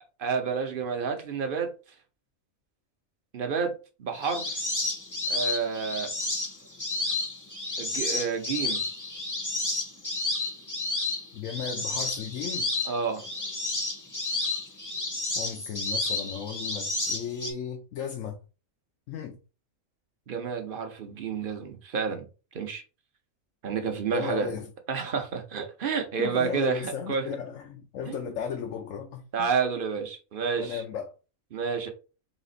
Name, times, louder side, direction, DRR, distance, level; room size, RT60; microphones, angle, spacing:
voice 1, 0.2-1.7 3.3-3.7 4.0-4.6 5.3-6.1 7.8-8.8 12.9-13.2 20.3-22.3 22.5-22.8 23.6-24.5 24.9-27.4 28.1-28.2 29.3-30.8 31.5-31.9, right 6 dB, 50° right, 0.8 m, -30 dB
sound 1, 4.1-17.5, left 2 dB, 20° left, 0.7 m, -31 dB
voice 2, 11.3-12.7 15.3-18.4 19.1-19.4 24.1-24.7 26.2-29.5 30.6-31.1, left 7 dB, 75° left, 1.0 m, -35 dB
4.1 x 2.5 x 3.8 m
omnidirectional pair, 1.4 m